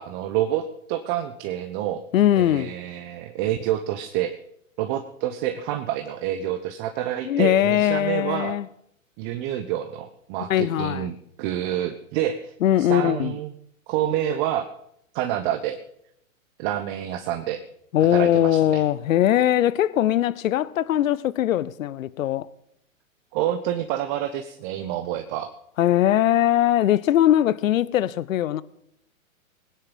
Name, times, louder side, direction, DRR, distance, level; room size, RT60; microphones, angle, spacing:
voice 1, 0.0-2.0 2.4-4.4 4.8-8.6 9.2-12.5 12.8-13.5 13.9-14.7 15.1-15.8 16.6-17.6 18.1-18.8 23.3-25.5, right 11 dB, 35° right, 1.1 m, -28 dB
voice 2, 2.1-2.7 7.2-8.7 10.5-11.1 12.6-13.3 17.9-22.5 25.8-28.6, left 12 dB, 75° left, 0.7 m, -21 dB
20.5 x 9.9 x 5.5 m
hypercardioid pair, 120°, 41 cm